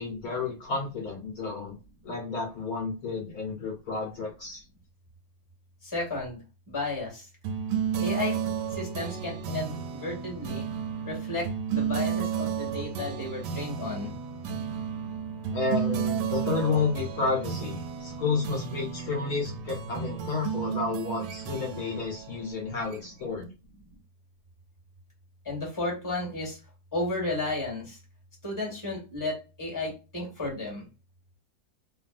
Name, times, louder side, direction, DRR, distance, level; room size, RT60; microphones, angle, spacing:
voice 1, 0.0-1.7 2.0-4.6 15.5-23.5, left 4 dB, 65° left, -1 dB, 1.3 m, -31 dB
voice 2, 5.8-6.4 6.7-7.3 8.0-8.4 8.7-10.6 11.0-14.1 25.4-26.6 26.9-28.0 28.4-30.8, left 2 dB, 10° left, -2 dB, 1.4 m, -33 dB
sound 1, 7.4-23.3, right 7 dB, 85° right, 1.2 m, -33 dB
3.1 x 2.3 x 2.4 m, 0.30 s
omnidirectional pair, 1.8 m